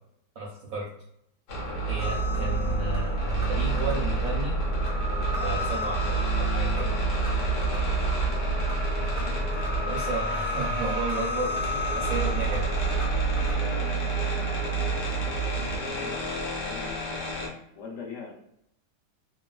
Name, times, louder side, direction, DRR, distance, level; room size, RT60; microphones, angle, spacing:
voice 1, 0.4-0.9 1.9-4.5 5.4-7.0 9.8-11.5 11.9-12.7, right 2 dB, 70° right, -4 dB, 0.8 m, -33 dB
sound 1, 1.5-17.5, right 4 dB, 80° left, 1.4 m, -29 dB
sound 2, 2.0-13.5, equal, 5° right, 0.4 m, -31 dB
voice 2, 13.5-14.5 15.6-16.2 16.5-17.1 17.7-18.3, left 4 dB, 60° left, -1 dB, 0.9 m, -42 dB
3.0 x 2.1 x 2.3 m, 0.76 s
omnidirectional pair, 1.9 m